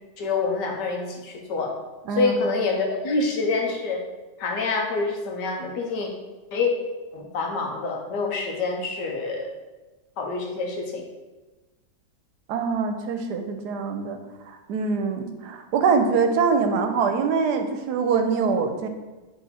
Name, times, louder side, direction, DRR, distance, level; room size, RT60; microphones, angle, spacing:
voice 1, 0.2-1.7 2.1-4.0 4.4-6.1 6.5-6.7 7.1-9.5 10.2-11.0, left 3 dB, 80° left, 1 dB, 1.6 m, -26 dB
voice 2, 12.5-14.2 14.5-18.9, right 5 dB, 75° right, 6 dB, 1.2 m, -24 dB
7.6 x 3.5 x 4.1 m, 1.2 s
omnidirectional pair, 1.8 m